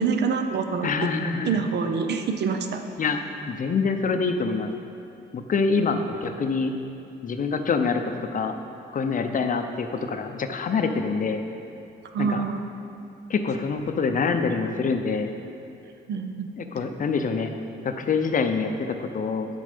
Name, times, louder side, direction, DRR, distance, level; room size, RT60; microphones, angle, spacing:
voice 1, 0.0-0.9 1.5-2.8 12.1-12.6 16.1-16.5, right 5 dB, 60° right, 6 dB, 0.6 m, -26 dB
voice 2, 0.8-1.6 3.0-3.2 3.5-4.7 5.3-6.7 7.2-8.6 8.9-11.4 12.2-12.4 13.3-15.3 16.6-17.5 17.8-19.6, left 4 dB, 40° left, 6 dB, 0.6 m, -25 dB
7.4 x 5.3 x 5.2 m, 2.7 s
cardioid pair, 90°, 20 cm